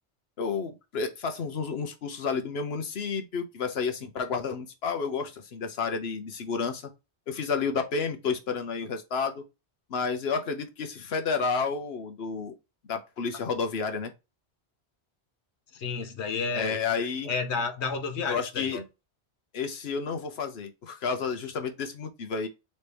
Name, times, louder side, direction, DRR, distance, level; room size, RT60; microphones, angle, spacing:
voice 1, 0.4-6.9 7.3-9.4 9.9-12.5 12.9-14.1 16.5-17.3 18.3-18.8 19.5-22.5, left 5 dB, 70° left, 1.1 m, -31 dB
voice 2, 15.7-16.8 17.3-18.8, left 4 dB, 85° left, 1.1 m, -31 dB
4.1 x 3.2 x 3.4 m
omnidirectional pair, 1.1 m